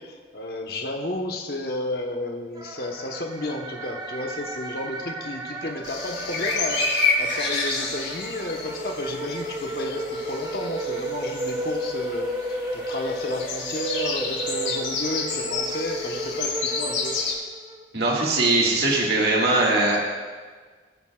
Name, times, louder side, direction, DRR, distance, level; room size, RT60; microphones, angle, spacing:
voice 1, 0.0-17.2, left 1 dB, 55° left, 2 dB, 1.1 m, -32 dB
sound 1, 2.5-17.8, right 1 dB, 20° right, 0.7 m, -33 dB
sound 2, 5.8-17.3, left 4 dB, 90° left, 2.9 m, -30 dB
voice 2, 17.9-20.1, right 2 dB, 60° right, -3 dB, 1.9 m, -21 dB
21.0 x 9.3 x 2.4 m, 1.5 s
head